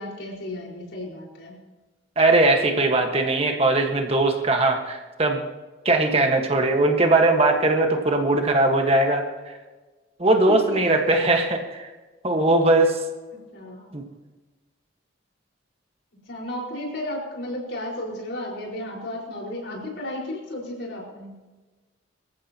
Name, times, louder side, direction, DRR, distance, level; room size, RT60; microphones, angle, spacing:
voice 1, 0.0-1.5 10.5-11.0 13.3-13.9 16.3-21.3, left 1 dB, 70° left, -2 dB, 4.8 m, -33 dB
voice 2, 2.2-5.4 5.8-9.2 10.2-11.9 12.2-13.0 13.9-14.0, right 2 dB, 30° right, 3 dB, 1.5 m, -20 dB
25.0 x 14.5 x 3.0 m, 1.3 s
head